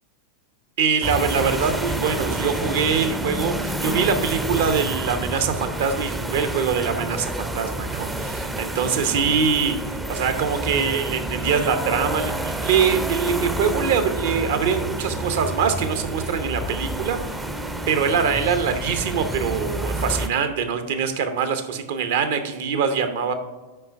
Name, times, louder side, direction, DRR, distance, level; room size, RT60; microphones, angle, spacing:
voice 1, 0.8-17.4 17.9-23.3, right 6 dB, 55° right, 8 dB, 0.7 m, -23 dB
sound 1, 1.0-20.3, right 1 dB, 10° right, 0.5 m, -28 dB
5.4 x 5.0 x 5.6 m, 1.2 s
figure-of-eight pair, 90°, 0 cm